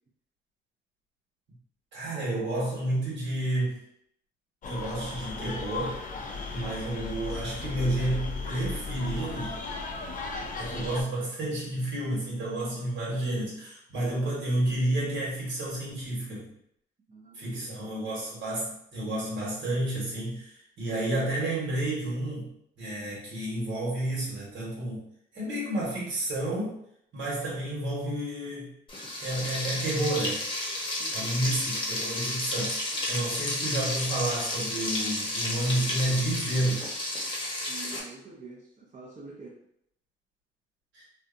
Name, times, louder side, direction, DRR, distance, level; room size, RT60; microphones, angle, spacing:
voice 1, 1.9-3.8 4.6-6.0 6.5-9.6 10.6-16.5 17.3-22.5 22.8-25.1 25.3-26.8 27.1-28.7 29.2-30.4 31.1-32.8 33.1-36.8 40.9-41.0, right 1 dB, 70° right, -6 dB, 1.3 m, -30 dB
sound 1, 4.6-11.0, left 4 dB, 40° left, 0.5 m, -36 dB
voice 2, 17.1-17.7 31.0-31.3 37.7-39.6, right 3 dB, 35° right, -5 dB, 0.7 m, -47 dB
Frying (food), 28.9-38.0, left 1 dB, 25° left, 0.8 m, -32 dB
2.6 x 2.3 x 2.5 m, 0.73 s
cardioid pair, 90°, 20 cm